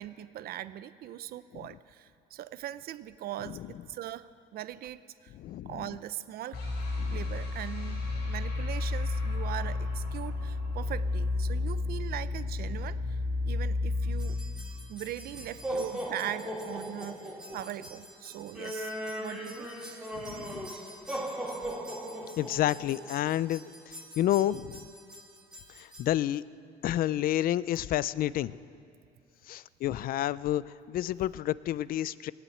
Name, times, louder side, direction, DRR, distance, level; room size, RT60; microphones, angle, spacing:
voice 1, 0.0-5.3 5.7-6.6 7.1-13.2 13.5-14.4 14.7-18.9 19.2-19.7, right 12 dB, 65° right, 14 dB, 0.6 m, -40 dB
voice 2, 5.3-5.8 7.0-7.2 20.1-20.7 22.4-24.8 25.8-26.4 26.8-28.6 29.5-32.3, left 13 dB, 60° left, 19 dB, 0.4 m, -30 dB
sound 1, 6.5-15.6, left 3 dB, 90° left, 4.3 m, -32 dB
sound 2, 14.2-26.1, right 1 dB, 5° right, 2.4 m, -39 dB
19.0 x 8.3 x 8.9 m, 2.7 s
cardioid pair, 110°, 17 cm